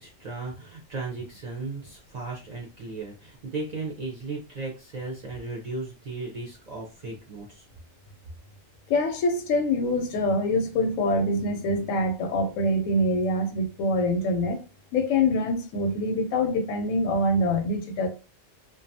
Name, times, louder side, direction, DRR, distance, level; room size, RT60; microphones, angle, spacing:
voice 1, 0.0-7.7, right 3 dB, 50° right, 0.5 m, -36 dB
voice 2, 8.9-14.6 14.9-18.1, left 1 dB, 85° left, 1.0 m, -25 dB
2.4 x 2.3 x 2.6 m
omnidirectional pair, 1.3 m